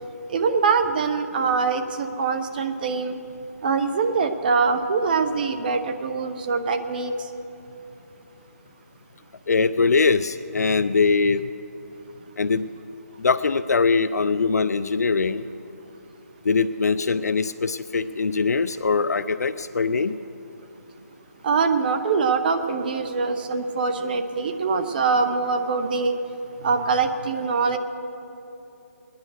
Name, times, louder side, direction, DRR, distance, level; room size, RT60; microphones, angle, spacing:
voice 1, 0.3-3.2 3.6-7.1 21.4-26.1 26.6-27.8, right 4 dB, 35° right, 8 dB, 0.7 m, -23 dB
voice 2, 9.5-11.4 12.4-12.6 13.2-15.4 16.4-20.1, left 4 dB, 75° left, 12 dB, 0.5 m, -22 dB
19.5 x 10.5 x 6.3 m, 2.9 s
hypercardioid pair, 165°, 9 cm